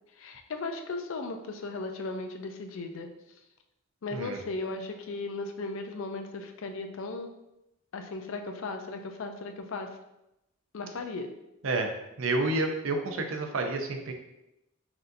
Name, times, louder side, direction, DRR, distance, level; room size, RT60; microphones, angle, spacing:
voice 1, 0.2-3.1 4.0-7.3 7.9-9.9 10.7-11.3, left 3 dB, 65° left, 5 dB, 0.4 m, -36 dB
voice 2, 12.2-14.1, right 2 dB, 65° right, 4 dB, 0.5 m, -29 dB
5.8 x 2.7 x 2.6 m, 0.89 s
head